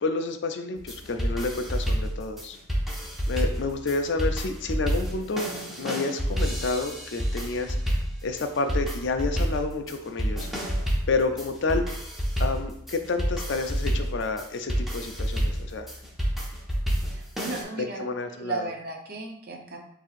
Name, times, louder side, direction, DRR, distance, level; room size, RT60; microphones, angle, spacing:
voice 1, 0.0-2.6 3.3-5.5 5.8-10.5 11.1-11.8 12.4-15.9 17.8-18.7, left 3 dB, 55° left, 7 dB, 0.4 m, -29 dB
sound 1, 0.8-17.6, equal, ahead, 0.7 m, -29 dB
voice 2, 17.1-19.8, right 3 dB, 45° right, 1 dB, 0.7 m, -35 dB
7.2 x 2.8 x 2.5 m, 0.72 s
head